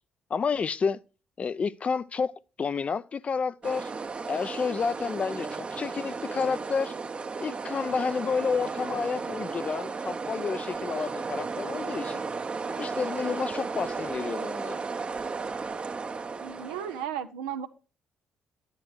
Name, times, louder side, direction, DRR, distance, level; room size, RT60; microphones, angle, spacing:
voice 1, 0.3-1.0 1.4-2.3 2.6-3.9 4.3-6.9 7.4-12.2 12.8-14.8, left 5 dB, 45° left, 0.5 m, -30 dB
sound 1, 3.6-17.1, right 4 dB, 40° right, 0.8 m, -34 dB
voice 2, 16.2-17.7, right 9 dB, 90° right, 0.6 m, -35 dB
9.7 x 9.7 x 3.1 m
hypercardioid pair, 50°, 3 cm